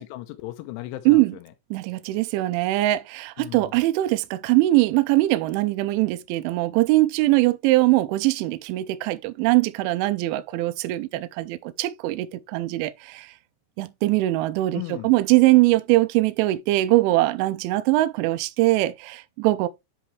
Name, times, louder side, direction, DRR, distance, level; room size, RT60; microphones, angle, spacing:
voice 1, 0.0-1.4 3.4-3.7 14.7-15.1, left 16 dB, 85° left, 3.0 m, -36 dB
voice 2, 1.7-13.3 13.8-19.7, right 18 dB, 80° right, 2.8 m, -21 dB
10.5 x 4.2 x 3.2 m
omnidirectional pair, 5.8 m